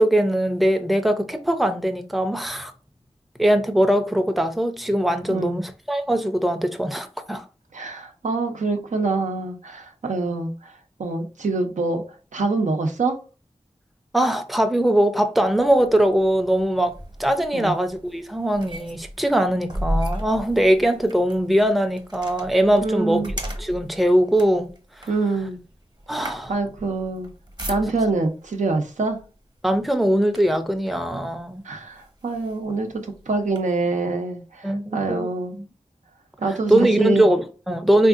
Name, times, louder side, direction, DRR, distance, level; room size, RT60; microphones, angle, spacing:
voice 1, 0.0-2.7 3.4-7.4 14.1-23.2 23.6-24.7 25.0-25.1 26.1-26.5 29.6-31.6 34.6-35.6 36.7-38.1, right 1 dB, ahead, 0.5 m, -21 dB
voice 2, 7.7-12.0 12.3-13.2 17.5-17.7 22.8-23.3 25.1-25.6 26.5-27.3 27.7-29.2 31.6-35.5 36.4-37.3, right 3 dB, 85° right, 0.6 m, -25 dB
sound 1, 15.5-28.3 29.1-29.3 29.7-30.8 31.4-31.5 31.9-33.6, equal, 35° right, 0.9 m, -35 dB
3.5 x 2.6 x 2.4 m
wide cardioid pair, 50°, 12 cm